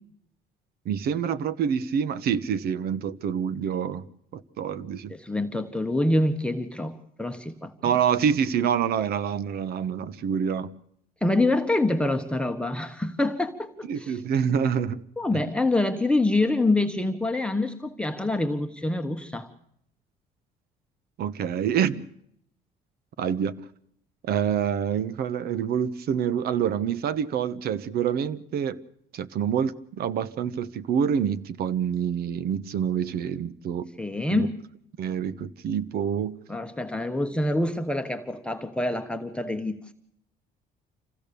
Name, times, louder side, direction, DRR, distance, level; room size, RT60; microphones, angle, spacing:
voice 1, 0.8-4.0 4.3-5.1 7.8-10.7 13.9-15.0 15.3-15.4 21.2-22.1 23.2-23.5 24.2-28.8 29.1-33.9 34.3-34.5 35.0-36.4, right 8 dB, 65° right, 1.0 m, -27 dB
voice 2, 5.1-8.0 11.2-14.2 15.2-19.5 34.0-34.5 36.5-39.9, left 2 dB, 5° left, 1.1 m, -26 dB
26.5 x 16.0 x 6.9 m
cardioid pair, 110°, 17 cm